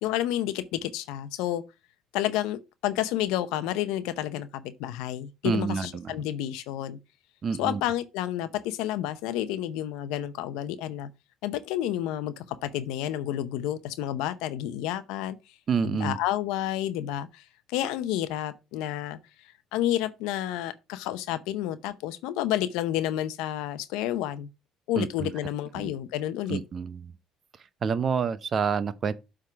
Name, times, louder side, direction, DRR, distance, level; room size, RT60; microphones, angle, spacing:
voice 1, 0.0-1.6 2.1-7.0 7.6-11.1 11.4-15.4 15.8-19.2 19.7-24.5 24.9-26.6, left 12 dB, 85° left, 0.7 m, -30 dB
voice 2, 5.4-6.2 7.4-7.8 15.7-16.2 25.0-25.3 25.7-25.9 26.5-27.1 27.8-29.1, right 6 dB, 40° right, 0.7 m, -28 dB
7.6 x 3.7 x 5.8 m
cardioid pair, 100°, 0 cm